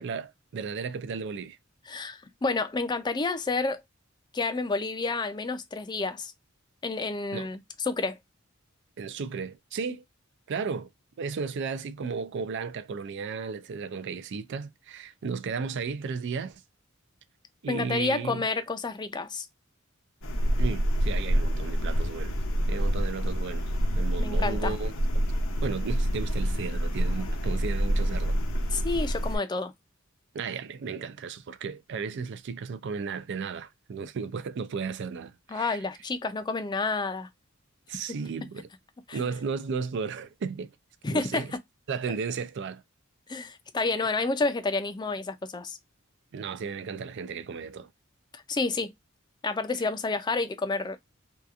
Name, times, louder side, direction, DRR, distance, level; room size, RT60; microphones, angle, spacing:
voice 1, 0.0-1.6 7.3-7.5 9.0-10.0 10.5-10.9 11.2-16.6 17.6-18.4 20.6-22.4 22.7-23.7 24.0-25.0 25.6-28.4 30.3-35.8 37.9-38.7 39.1-40.7 41.1-41.5 41.9-42.8 46.3-47.9, right 5 dB, 60° right, 0.4 m, -34 dB
voice 2, 1.9-3.8 4.3-6.3 6.8-7.6 7.9-8.2 17.7-19.5 24.2-24.7 28.7-29.7 35.5-37.3 39.1-39.3 41.0-41.4 43.3-45.8 48.3-48.9 49.4-51.0, left 3 dB, 20° left, 0.4 m, -29 dB
sound 1, 20.2-29.4, equal, 65° left, 0.6 m, -27 dB
2.8 x 2.3 x 2.3 m
head